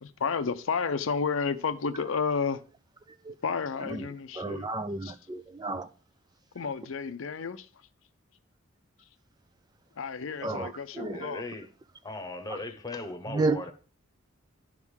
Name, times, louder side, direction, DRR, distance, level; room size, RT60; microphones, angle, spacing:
voice 1, 0.0-2.6 3.4-4.7 5.0-5.2 6.5-7.7 10.0-11.4, left 5 dB, 75° left, 0.6 m, -31 dB
voice 2, 4.4-5.9 10.4-11.4 13.3-13.6, right 3 dB, 20° right, 0.3 m, -32 dB
voice 3, 11.1-11.7 12.0-13.7, left 2 dB, 20° left, 1.0 m, -38 dB
11.0 x 3.6 x 6.3 m
head